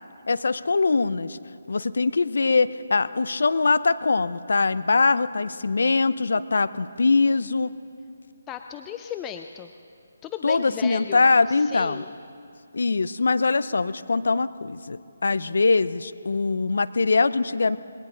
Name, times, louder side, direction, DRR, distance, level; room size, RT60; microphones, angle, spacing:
voice 1, 0.3-1.4 1.7-7.7 10.4-12.0 12.7-17.8, left 4 dB, 70° left, 15 dB, 0.5 m, -22 dB
voice 2, 8.5-9.7 10.2-12.1, left 9 dB, 15° left, 7 dB, 0.4 m, -36 dB
21.0 x 17.5 x 3.9 m, 2.5 s
figure-of-eight pair, 155°, 0 cm